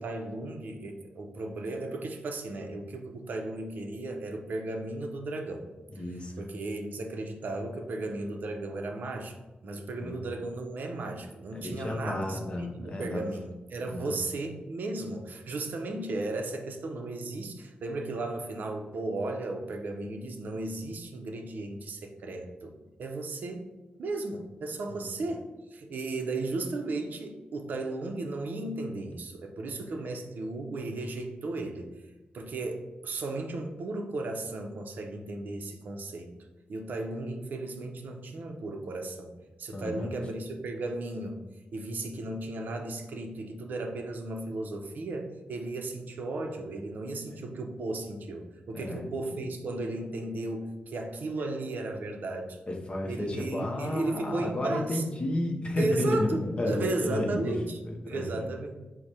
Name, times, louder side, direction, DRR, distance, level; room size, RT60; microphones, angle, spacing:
voice 1, 0.0-5.7 6.4-9.4 9.6-23.7 24.0-31.9 32.3-36.3 36.7-39.3 39.6-41.4 41.7-52.6 53.0-55.0 55.8-57.8 58.1-58.8, right 2 dB, 65° right, 3 dB, 0.5 m, -35 dB
voice 2, 5.9-6.3 10.0-10.2 11.5-13.3 13.9-14.1 25.0-25.2 39.7-40.1 48.7-49.0 49.3-49.4 52.7-58.5, left 1 dB, 35° left, 1 dB, 0.6 m, -32 dB
4.7 x 2.1 x 4.1 m, 1.1 s
wide cardioid pair, 145°, 3 cm